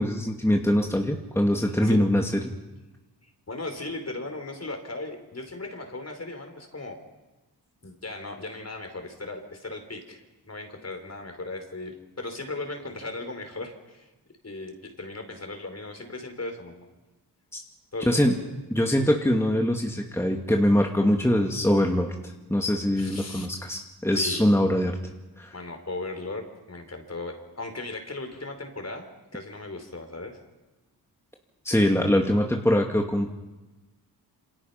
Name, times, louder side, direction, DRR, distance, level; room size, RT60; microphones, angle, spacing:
voice 1, 0.0-2.4 17.5-17.6 18.1-18.3 18.7-25.0 25.4-25.5 31.6-33.3, equal, 5° left, 2 dB, 2.4 m, -23 dB
voice 2, 3.5-7.0 7.8-10.2 10.5-14.1 14.4-16.8 17.9-18.4 23.0-23.5 24.1-24.5 25.5-29.1 29.3-30.4, left 2 dB, 40° left, 5 dB, 4.8 m, -37 dB
27.5 x 26.5 x 5.9 m, 1.1 s
cardioid pair, 65°, 39 cm